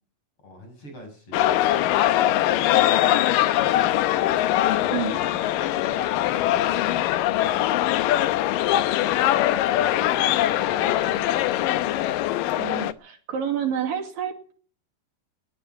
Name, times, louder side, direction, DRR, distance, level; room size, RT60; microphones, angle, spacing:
voice 1, 0.4-4.3 4.7-8.2 8.8-9.2 9.6-11.7, right 1 dB, 35° left, 5 dB, 7.1 m, -44 dB
sound 1, 1.3-12.9, left 13 dB, 75° left, 2.4 m, -22 dB
voice 2, 12.6-14.5, right 8 dB, 70° right, 5 dB, 4.0 m, -29 dB
21.0 x 11.5 x 5.7 m, 0.43 s
omnidirectional pair, 4.3 m